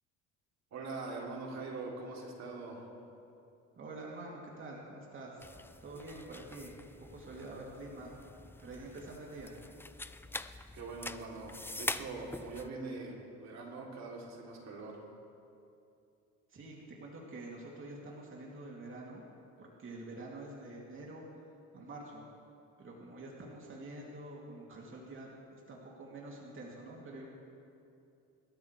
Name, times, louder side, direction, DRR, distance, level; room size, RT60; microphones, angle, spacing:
voice 1, 0.7-2.8 10.7-15.0, right 3 dB, 60° right, -2 dB, 3.1 m, -43 dB
voice 2, 3.8-5.4 5.8-8.2 8.6-9.5 16.5-19.2 19.6-21.2 21.7-22.2 22.8-27.3, right 2 dB, 40° right, -3 dB, 2.8 m, -47 dB
sound 1, 5.4-12.7, left 2 dB, 5° left, 0.5 m, -44 dB
26.5 x 13.0 x 3.3 m, 2.6 s
cardioid pair, 95°, 31 cm